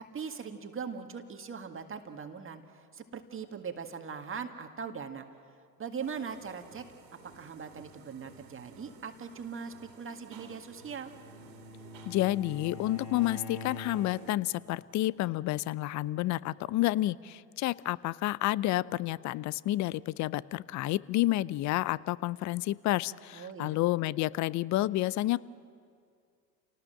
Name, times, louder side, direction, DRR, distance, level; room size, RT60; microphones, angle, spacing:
voice 1, 0.0-5.3 5.8-6.8 7.3-11.1 23.3-23.8, right 6 dB, 25° right, 5 dB, 1.9 m, -40 dB
sound 1, 6.0-14.4, right 4 dB, 75° right, 2.5 m, -56 dB
Bowed string instrument, 10.6-14.5, left 1 dB, 80° left, 3.9 m, -44 dB
voice 2, 12.1-25.4, left 16 dB, 35° left, 20 dB, 0.6 m, -30 dB
30.0 x 18.5 x 7.8 m, 2.2 s
hypercardioid pair, 80°, 50 cm